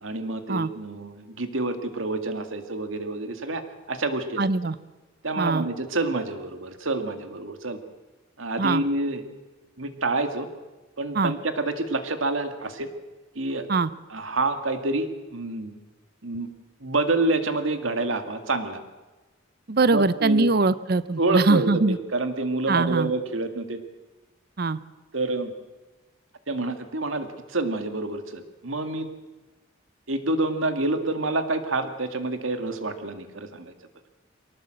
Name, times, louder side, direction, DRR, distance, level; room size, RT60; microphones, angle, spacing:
voice 1, 0.0-3.6 3.9-4.4 5.2-7.8 8.4-9.2 9.8-10.5 11.0-12.9 13.4-13.7 14.1-15.7 16.2-16.5 16.8-18.8 19.9-20.5 21.2-23.8 25.1-25.5 26.5-29.1 30.1-33.7, right 2 dB, 85° right, 8 dB, 2.1 m, -27 dB
voice 2, 4.4-4.7 5.4-5.7 8.6-8.8 11.1-11.3 13.7-13.9 19.7-22.0 22.7-23.1 24.6-24.8, right 3 dB, 50° right, 16 dB, 0.6 m, -22 dB
23.0 x 19.0 x 7.7 m, 1.2 s
head